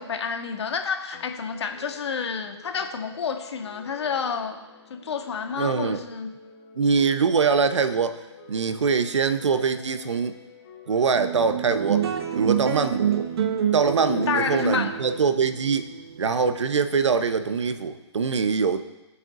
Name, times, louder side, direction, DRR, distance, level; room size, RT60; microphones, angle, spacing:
voice 1, 0.0-4.6 4.9-6.3 14.1-14.9, left 6 dB, 70° left, 5 dB, 1.5 m, -29 dB
sound 1, 1.1-14.4, left 7 dB, 50° left, 3.0 m, -50 dB
voice 2, 5.6-6.0 6.8-8.2 8.5-10.3 10.9-12.0 12.3-13.2 13.7-15.9 16.2-18.8, right 5 dB, 80° right, 10 dB, 0.9 m, -23 dB
sound 2, 11.1-17.8, right 9 dB, 60° right, 1.2 m, -28 dB
21.0 x 8.0 x 2.7 m, 1.1 s
hypercardioid pair, 135°, 15 cm